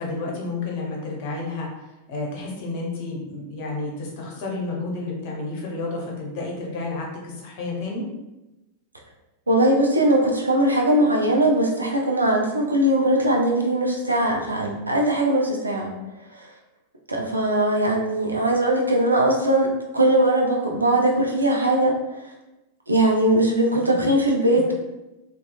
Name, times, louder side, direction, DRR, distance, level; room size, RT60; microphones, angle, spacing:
voice 1, 0.0-1.7 2.1-8.1 23.9-24.1, left 3 dB, 50° left, -2 dB, 0.7 m, -31 dB
voice 2, 9.5-15.9 16.3-16.5 17.1-21.9 22.9-24.7, right 1 dB, 80° right, 0 dB, 0.4 m, -20 dB
2.8 x 2.2 x 2.2 m, 1.0 s
figure-of-eight pair, 90°, 0 cm